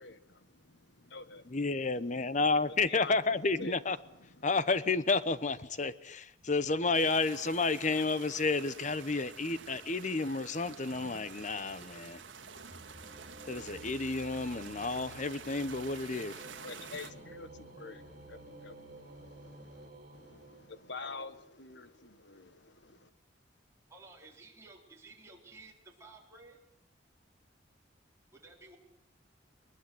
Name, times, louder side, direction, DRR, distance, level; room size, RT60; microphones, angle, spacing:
voice 1, 0.0-3.2 3.6-4.6 16.0-23.1, left 4 dB, 60° left, 1.6 m, -48 dB
voice 2, 1.5-4.0 4.4-12.2 13.5-16.4, left 3 dB, 40° left, 0.9 m, -31 dB
sound 1, 6.4-14.0, equal, 30° right, 6.9 m, -61 dB
sound 2, 6.9-17.1, right 6 dB, 75° right, 2.0 m, -49 dB
sound 3, 10.7-21.3, right 2 dB, 50° right, 4.8 m, -53 dB
voice 3, 23.9-26.6 28.3-28.8, right 3 dB, 15° right, 4.1 m, -54 dB
21.5 x 21.0 x 7.9 m
head